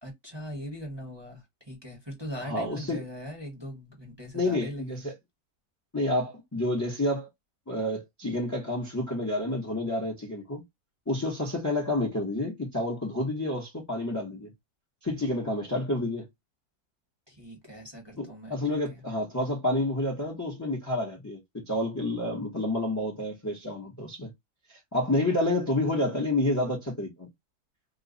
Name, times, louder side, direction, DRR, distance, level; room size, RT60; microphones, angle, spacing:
voice 1, 0.0-5.0 17.3-18.6 18.9-19.0, equal, 20° right, 0.9 m, -40 dB
voice 2, 2.5-3.0 4.3-5.1 5.9-7.3 7.7-10.6 11.1-14.5 15.0-16.3 18.2-24.3 24.7-27.3, left 1 dB, 15° left, 0.7 m, -29 dB
3.0 x 2.2 x 3.8 m
omnidirectional pair, 1.7 m